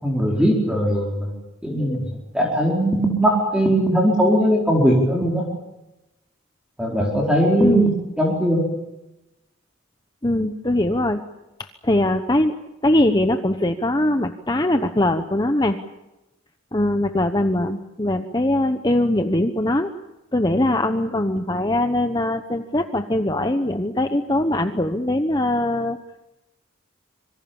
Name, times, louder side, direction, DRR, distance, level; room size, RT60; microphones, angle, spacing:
voice 1, 0.0-1.3 1.6-2.1 2.3-5.5 6.8-8.6, equal, 5° right, -2 dB, 4.5 m, -19 dB
voice 2, 10.2-11.2 11.8-12.5 12.8-15.8 16.7-19.9 20.3-26.0, left 1 dB, 20° left, 7 dB, 1.0 m, -21 dB
26.5 x 24.0 x 7.2 m, 0.97 s
head